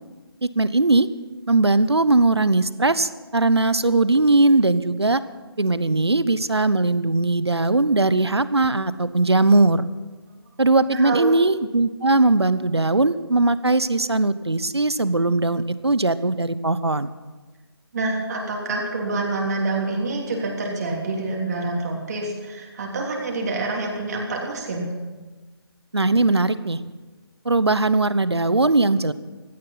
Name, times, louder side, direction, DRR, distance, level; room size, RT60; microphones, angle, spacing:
voice 1, 0.4-1.1 1.5-5.2 5.6-9.9 10.6-17.1 25.9-26.8 27.4-29.1, right 2 dB, 80° right, 15 dB, 0.8 m, -19 dB
voice 2, 10.9-11.3 17.9-24.9, right 3 dB, 40° right, -1 dB, 3.1 m, -27 dB
16.5 x 13.5 x 5.7 m, 1.3 s
figure-of-eight pair, 145°, 13 cm